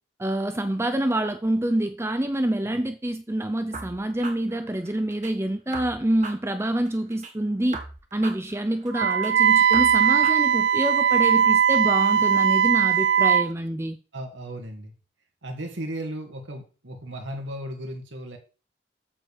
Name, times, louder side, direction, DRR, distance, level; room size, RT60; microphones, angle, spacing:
voice 1, 0.2-7.8 8.1-14.0, right 1 dB, 15° right, 0.6 m, -26 dB
sound 1, 3.7-5.3 5.7-7.3 7.7-9.3 9.7-11.3, right 3 dB, 40° right, 1.6 m, -40 dB
Wind instrument woodwind instrument, 8.9-13.5, right 8 dB, 70° right, 0.4 m, -19 dB
voice 2, 14.1-14.9 15.4-18.4, right 1 dB, 85° right, 2.2 m, -35 dB
8.3 x 7.1 x 4.8 m
head